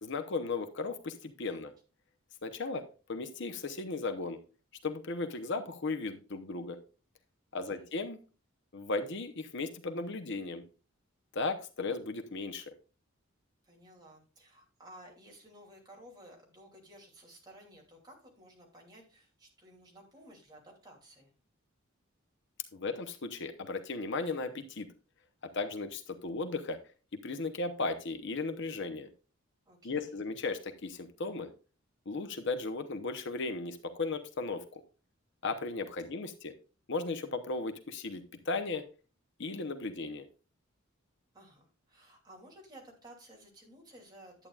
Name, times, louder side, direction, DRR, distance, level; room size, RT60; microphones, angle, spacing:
voice 1, 0.0-1.7 2.4-4.4 4.8-6.8 7.5-8.2 8.7-10.6 11.3-12.6 22.7-24.9 25.5-26.8 27.2-29.1 29.8-31.5 32.1-34.8 35.4-36.5 36.9-38.8 39.4-40.3, left 3 dB, 60° left, 7 dB, 0.8 m, -36 dB
voice 2, 13.6-21.3 29.7-30.2 41.3-44.5, right 1 dB, 20° right, -1 dB, 2.7 m, -55 dB
11.0 x 8.6 x 2.4 m, 0.35 s
head